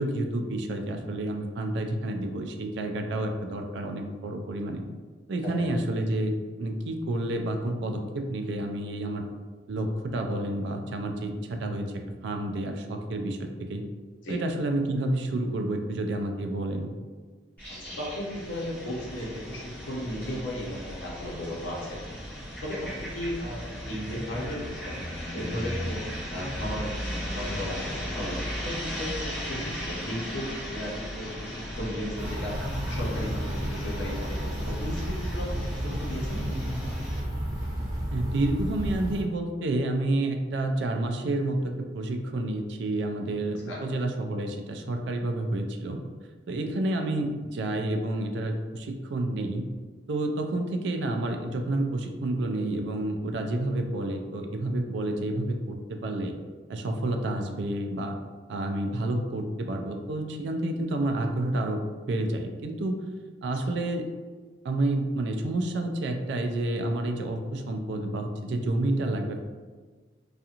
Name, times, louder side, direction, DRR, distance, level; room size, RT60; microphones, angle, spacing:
voice 1, 0.0-4.8 5.3-9.2 9.7-13.8 14.3-16.9 38.1-46.0 46.5-49.6 50.1-56.4 56.7-58.2 58.5-63.0 63.4-64.1 64.6-69.4, right 1 dB, 65° right, 4 dB, 0.3 m, -29 dB
voice 2, 5.4-5.8 14.2-14.4 17.7-22.0 22.6-23.6 23.8-26.0 26.3-32.5 32.9-36.6 43.7-43.8 63.6-63.8, equal, 80° left, -4 dB, 0.8 m, -36 dB
sound 1, 17.6-37.2, equal, 10° left, 1.1 m, -36 dB
sound 2, 32.2-39.2, equal, 20° right, 0.6 m, -32 dB
2.8 x 2.4 x 2.4 m, 1.4 s
head